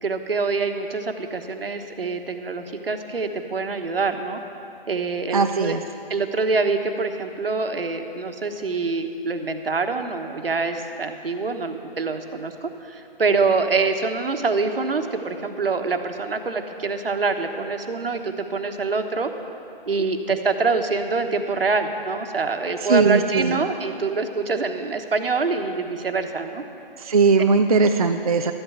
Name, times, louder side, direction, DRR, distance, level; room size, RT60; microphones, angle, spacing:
voice 1, 0.0-4.4 4.9-5.8 6.1-19.3 19.9-26.6, right 4 dB, 75° right, 6 dB, 1.3 m, -25 dB
voice 2, 5.3-5.8 22.9-23.6 27.0-28.5, right 4 dB, 40° right, 6 dB, 0.4 m, -19 dB
12.5 x 8.2 x 8.1 m, 2.7 s
figure-of-eight pair, 160°, 29 cm